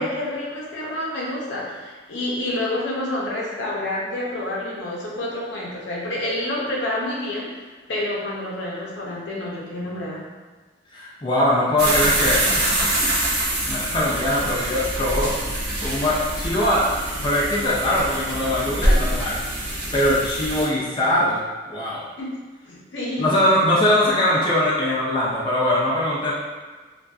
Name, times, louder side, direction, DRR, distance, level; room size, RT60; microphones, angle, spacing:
voice 1, 0.0-10.2 22.2-22.4 22.7-23.3, left 1 dB, 75° left, -5 dB, 0.6 m, -28 dB
voice 2, 10.9-13.1 13.4-16.9 17.2-19.4 19.9-22.0 23.2-26.3, left 1 dB, 25° left, -6 dB, 0.4 m, -22 dB
sound 1, 11.8-20.7, right 1 dB, 65° right, 0.7 m, -25 dB
2.5 x 2.2 x 2.3 m, 1.3 s
head